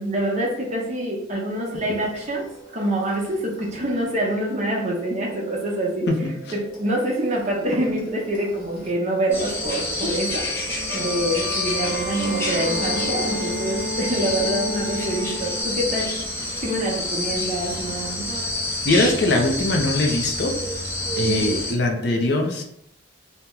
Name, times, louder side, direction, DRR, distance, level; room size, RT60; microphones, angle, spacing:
voice 1, 0.0-2.4 2.7-6.1 6.5-16.1 16.6-18.3 21.2-21.5, right 1 dB, 35° right, -2 dB, 0.7 m, -26 dB
sound 1, 1.7-8.9 9.2-15.6, equal, 70° left, 1.0 m, -34 dB
sound 2, 9.3-21.7, left 2 dB, 10° left, 0.6 m, -28 dB
voice 2, 18.8-20.5 21.2-22.6, left 2 dB, 55° left, 2 dB, 0.5 m, -21 dB
2.9 x 2.1 x 3.6 m, 0.72 s
head